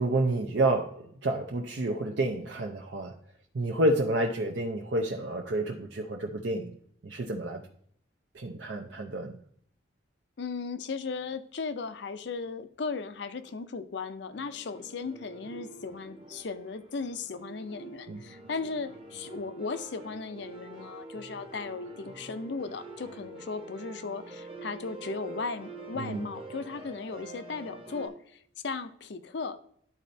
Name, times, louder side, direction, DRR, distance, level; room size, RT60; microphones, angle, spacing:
voice 1, 0.0-3.1 3.5-6.7 7.0-7.6 8.3-9.4 18.1-18.2 26.0-26.2, right 2 dB, 65° right, 0 dB, 0.6 m, -29 dB
voice 2, 10.4-29.6, left 4 dB, 60° left, 12 dB, 0.5 m, -37 dB
sound 1, 14.3-28.1, right 2 dB, 30° right, 0.9 m, -46 dB
12.0 x 4.2 x 2.7 m, 0.64 s
head